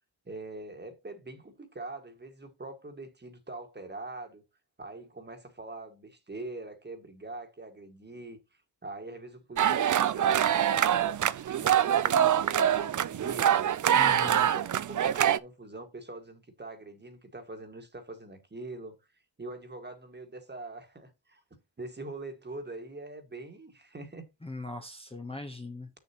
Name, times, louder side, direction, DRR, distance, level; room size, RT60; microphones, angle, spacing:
voice 1, 0.2-4.4 4.8-10.9 11.6-13.7 14.2-18.9 19.4-21.4 21.8-24.2, right 2 dB, 25° right, 1.6 m, -43 dB
chant de manifestation féministe, 9.6-15.4, right 10 dB, 45° right, 0.4 m, -25 dB
voice 2, 13.9-14.5 24.4-25.9, left 2 dB, 15° left, 0.9 m, -40 dB
7.9 x 6.9 x 2.9 m
wide cardioid pair, 145°, 43 cm